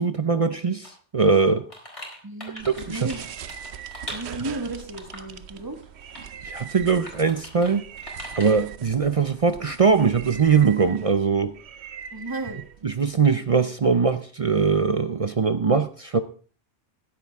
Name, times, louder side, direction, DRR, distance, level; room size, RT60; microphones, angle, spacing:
voice 1, 0.0-1.7 2.6-3.1 6.4-7.8 8.3-11.5 12.8-16.2, right 5 dB, 40° right, 10 dB, 0.5 m, -21 dB
sound 1, 0.8-0.9 1.3-4.5 5.0-5.4 5.8-6.3 6.6-6.7 7.1-7.7 8.0-8.6, left 1 dB, 30° left, 4.4 m, -41 dB
voice 2, 2.2-3.3 4.1-5.8 12.1-12.6, right 2 dB, 20° right, 4 dB, 1.8 m, -34 dB
sound 2, 2.6-13.2, right 8 dB, 70° right, 1.0 m, -41 dB
16.0 x 10.5 x 3.5 m, 0.41 s
omnidirectional pair, 1.2 m